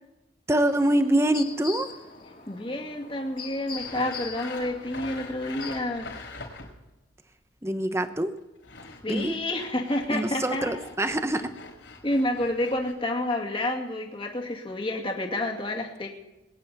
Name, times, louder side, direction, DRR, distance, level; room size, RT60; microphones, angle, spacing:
voice 1, 0.5-1.9 7.6-8.3 9.1-9.3 10.1-11.5, right 1 dB, 15° right, 9 dB, 0.9 m, -24 dB
sound 1, 0.7-5.8, left 6 dB, 45° left, 2.7 m, -42 dB
voice 2, 2.5-6.1 9.0-10.9 12.0-16.1, left 1 dB, 30° left, 0 dB, 2.3 m, -29 dB
Sawing, 3.7-6.9 8.4-12.9, left 3 dB, 80° left, 5.0 m, -43 dB
21.5 x 10.5 x 4.2 m, 0.97 s
head